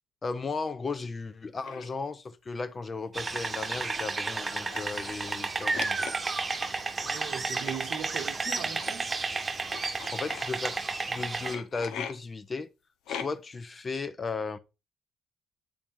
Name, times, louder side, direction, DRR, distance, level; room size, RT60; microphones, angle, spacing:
voice 1, 0.2-6.1 10.1-12.7 13.1-14.6, left 4 dB, 35° left, 0.8 m, -35 dB
sound 1, 1.6-1.9 3.0-3.2 3.5-3.6 4.4-5.3 5.7-6.5 7.6-7.8 8.8-8.9 9.6-10.4 11.4-12.1 13.1-13.6, left 7 dB, 90° left, 0.8 m, -40 dB
sound 2, 3.1-11.6, right 3 dB, 25° right, 1.1 m, -32 dB
voice 2, 7.0-9.1, right 8 dB, 75° right, 0.8 m, -39 dB
8.8 x 3.4 x 4.5 m
cardioid pair, 90°, 0 cm